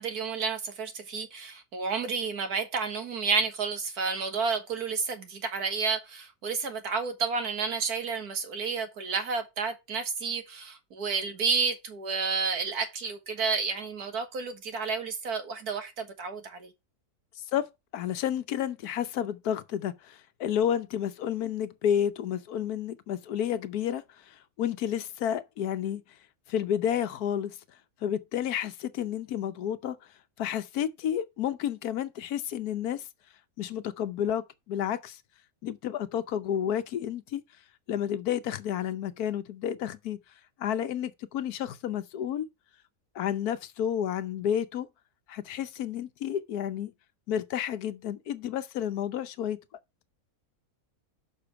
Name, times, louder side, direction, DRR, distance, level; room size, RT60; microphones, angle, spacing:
voice 1, 0.0-16.7, right 5 dB, 80° right, 1.9 m, -31 dB
voice 2, 17.5-26.0 26.5-27.6 28.0-30.0 30.4-33.1 33.6-35.2 35.6-37.4 37.9-40.2 40.6-42.5 43.1-44.9 45.3-46.9 47.3-49.6, left 9 dB, 80° left, 1.3 m, -31 dB
6.8 x 5.2 x 5.8 m
omnidirectional pair, 1.6 m